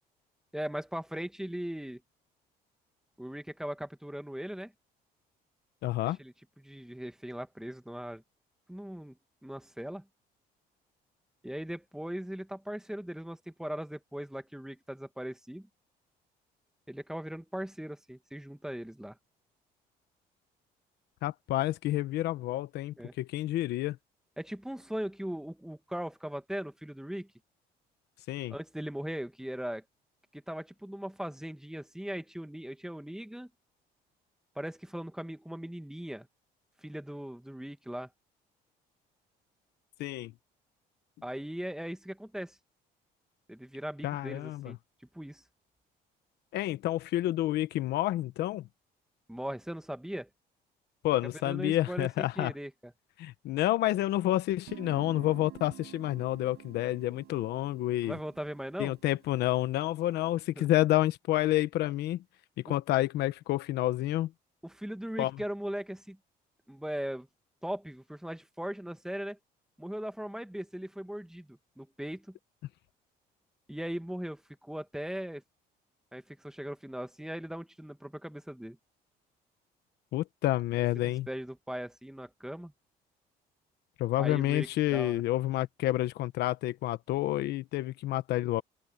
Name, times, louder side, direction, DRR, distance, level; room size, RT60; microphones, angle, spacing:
voice 1, 0.5-2.0 3.2-4.7 6.1-8.2 8.7-9.2 9.4-10.0 11.4-15.7 16.9-19.2 23.0-23.1 24.4-27.3 28.5-29.8 30.3-33.5 34.6-36.3 36.8-38.1 41.2-42.6 43.5-44.8 45.1-45.4 49.3-50.3 51.4-52.9 58.0-58.9 60.6-60.7 62.7-62.8 64.6-66.2 66.7-67.3 67.6-69.4 69.8-72.4 73.7-75.4 76.1-78.8 81.0-82.7 84.2-85.2, equal, 5° right, 1.7 m, -39 dB
voice 2, 5.8-6.2 21.2-24.0 28.3-28.5 40.0-40.3 44.0-44.8 46.5-48.7 51.0-52.5 53.2-58.2 58.8-62.2 62.6-64.3 65.2-65.3 80.1-81.3 84.0-88.6, left 15 dB, 75° left, 1.1 m, -29 dB
Guitar, 54.7-60.2, right 15 dB, 80° right, 5.0 m, -50 dB
open air
cardioid pair, 110°, 17 cm